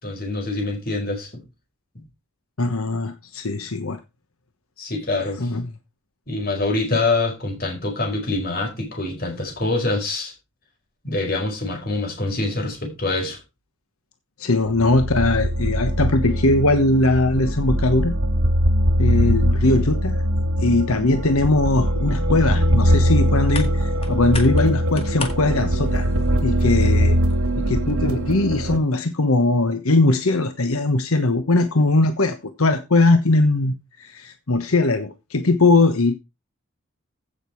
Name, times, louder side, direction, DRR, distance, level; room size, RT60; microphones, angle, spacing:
voice 1, 0.0-1.4 1.9-2.0 4.8-5.5 6.3-10.3 11.0-13.4, left 2 dB, 45° left, 4.8 m, -25 dB
voice 2, 2.6-4.0 5.4-5.7 14.4-18.1 19.0-20.2 20.6-26.1 26.4-27.2 27.5-36.1, left 2 dB, 85° left, 1.2 m, -20 dB
sound 1, 14.7-28.8, equal, 90° right, 2.1 m, -21 dB
sound 2, 22.6-27.8, left 4 dB, 25° left, 2.0 m, -39 dB
15.5 x 6.8 x 4.6 m
head